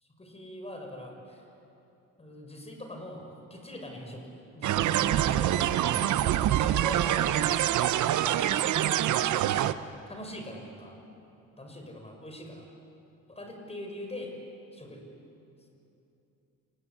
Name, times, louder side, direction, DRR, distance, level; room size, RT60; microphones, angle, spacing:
voice 1, 0.0-1.5 2.2-5.6 6.3-9.3 10.1-11.0 11.6-12.6 13.3-14.4 14.7-15.1, left 1 dB, 20° left, 3 dB, 6.6 m, -43 dB
sound 1, 4.6-9.7, right 12 dB, 75° right, 0.9 m, -25 dB
28.5 x 20.0 x 9.6 m, 2.8 s
cardioid pair, 90°, 30 cm